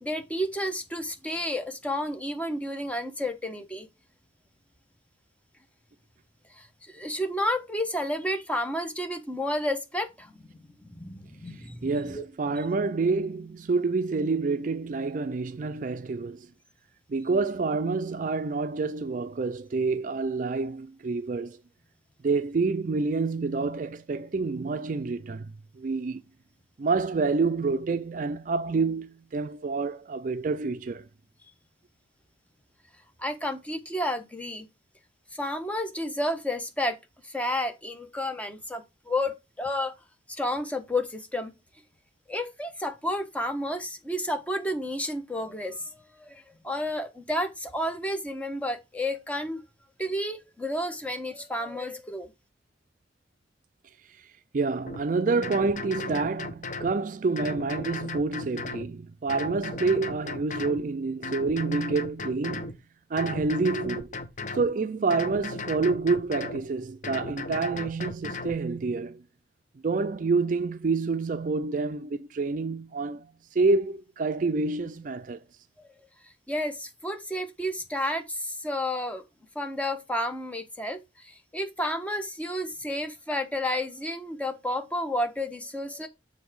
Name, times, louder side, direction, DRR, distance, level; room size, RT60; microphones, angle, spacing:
voice 1, 0.0-3.9 6.5-12.6 33.2-34.7 35.3-37.0 37.2-39.9 40.3-41.5 42.3-49.6 50.0-52.3 75.8-75.9 76.2-79.2 79.5-86.1, left 1 dB, 10° left, 1.1 m, -31 dB
voice 2, 11.8-16.5 17.1-21.6 22.2-26.2 26.8-31.1 54.2-54.3 54.5-62.8 63.1-64.1 64.5-69.2 69.8-75.4, right 4 dB, 45° right, 0.4 m, -28 dB
sound 1, 54.9-55.0 55.4-56.9 57.4-58.9 59.3-60.8 61.2-62.8 63.2-64.7 65.1-66.6 67.0-68.6, left 3 dB, 45° left, 1.0 m, -36 dB
7.4 x 3.9 x 6.0 m
head